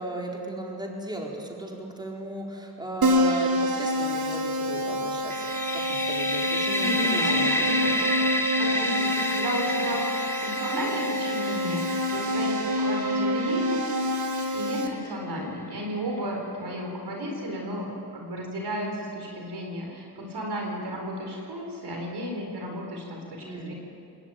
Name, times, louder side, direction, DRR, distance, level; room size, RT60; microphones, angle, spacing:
voice 1, 0.0-5.5 5.7-7.7 23.4-23.7, right 1 dB, 10° right, -2 dB, 4.4 m, -36 dB
Keyboard (musical), 3.0-14.9, equal, 65° right, 2.5 m, -27 dB
sound 1, 5.3-15.0, left 1 dB, 5° left, 1.5 m, -30 dB
voice 2, 6.8-13.8 14.3-23.7, equal, 85° right, 1 dB, 4.5 m, -33 dB
21.0 x 17.5 x 9.2 m, 2.5 s
cardioid pair, 65°, 38 cm